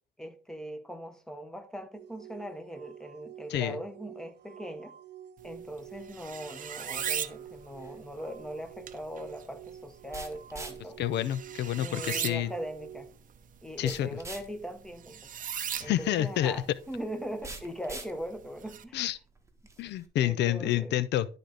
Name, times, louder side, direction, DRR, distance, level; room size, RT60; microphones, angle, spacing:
voice 1, 0.2-5.0 5.4-11.0 11.8-13.1 13.6-15.2 15.8-19.1 20.2-21.0, equal, 5° left, 1.1 m, -40 dB
sound 1, 1.9-13.2, right 9 dB, 80° right, 0.7 m, -49 dB
sound 2, 5.4-18.8, right 9 dB, 50° right, 0.6 m, -41 dB
sound 3, 7.5-20.1, right 3 dB, 15° right, 1.3 m, -49 dB
voice 2, 11.0-12.5 13.8-14.1 15.8-16.6 18.9-19.2 19.8-21.3, left 12 dB, 80° left, 0.4 m, -28 dB
11.5 x 3.9 x 3.3 m
cardioid pair, 100°, 18 cm